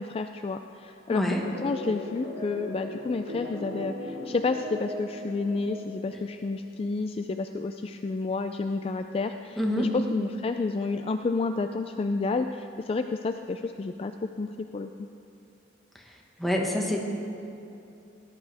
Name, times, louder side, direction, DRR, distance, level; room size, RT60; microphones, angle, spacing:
voice 1, 0.0-14.1 14.4-15.1, left 3 dB, 30° left, 7 dB, 0.3 m, -30 dB
voice 2, 1.1-1.4 9.6-9.9 16.4-17.0, left 1 dB, ahead, -2 dB, 1.5 m, -26 dB
sound 1, 1.4-6.5, left 1 dB, 75° right, 2.6 m, -39 dB
18.5 x 11.5 x 3.5 m, 2.7 s
head